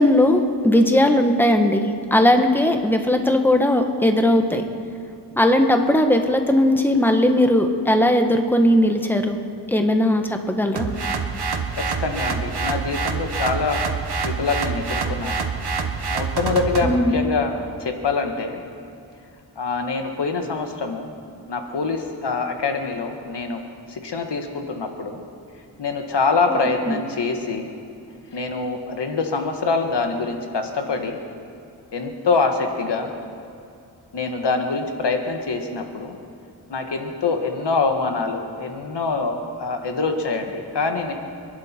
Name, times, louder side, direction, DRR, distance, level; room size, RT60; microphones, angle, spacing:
voice 1, 0.0-4.6 5.4-9.4 9.7-10.9 16.8-17.1 26.5-27.0, left 1 dB, 5° left, 5 dB, 1.4 m, -18 dB
sound 1, 10.8-17.0, right 5 dB, 70° right, 1.4 m, -26 dB
voice 2, 12.0-13.8 14.2-15.4 16.1-18.6 19.5-21.1 21.5-23.6 23.9-25.2 25.8-27.7 28.3-31.2 31.9-33.1 34.1-36.1 36.7-41.1, left 4 dB, 80° left, 4 dB, 1.6 m, -25 dB
27.5 x 11.0 x 4.5 m, 2.5 s
wide cardioid pair, 85°, 41 cm